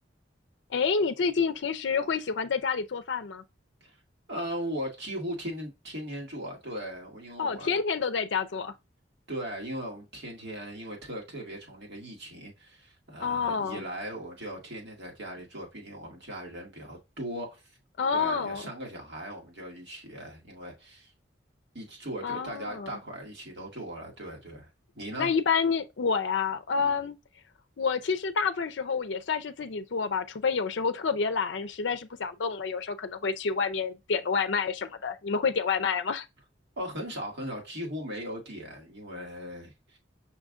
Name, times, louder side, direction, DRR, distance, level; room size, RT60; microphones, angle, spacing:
voice 1, 0.7-3.4 7.4-8.7 13.2-13.8 18.0-18.6 22.2-22.9 25.2-27.2 27.8-36.3, left 5 dB, 70° left, 0.5 m, -28 dB
voice 2, 4.3-7.8 9.3-17.6 18.1-21.1 21.7-24.7 24.9-25.3 26.8-27.0 36.8-40.0, equal, 65° right, 1.9 m, -38 dB
5.7 x 2.5 x 3.5 m
head